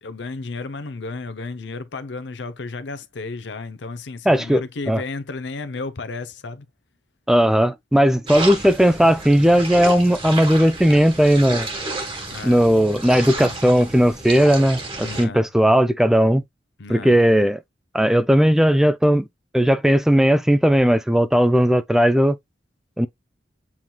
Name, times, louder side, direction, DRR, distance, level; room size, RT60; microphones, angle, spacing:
voice 1, 0.0-6.7 12.3-12.7 13.4-13.5 15.0-15.5 16.8-17.2, left 3 dB, 75° left, 0.7 m, -33 dB
voice 2, 4.3-5.0 7.3-11.7 12.4-16.4 16.9-17.6 17.9-19.3 19.5-22.4 23.0-23.1, equal, 5° right, 0.3 m, -17 dB
sound 1, 8.3-15.3, right 2 dB, 30° right, 1.4 m, -31 dB
7.1 x 3.0 x 2.3 m
head